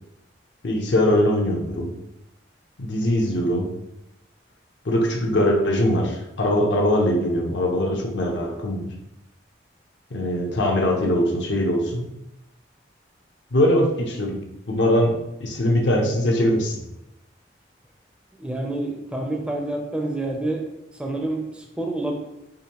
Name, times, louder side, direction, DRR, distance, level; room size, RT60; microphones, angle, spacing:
voice 1, 0.6-1.9 2.8-3.7 4.8-8.9 10.1-12.1 13.5-16.8, left 1 dB, 75° left, 0 dB, 0.7 m, -22 dB
voice 2, 18.3-20.6 21.0-22.2, right 2 dB, 5° right, 1 dB, 0.5 m, -28 dB
5.0 x 2.6 x 2.9 m, 0.88 s
head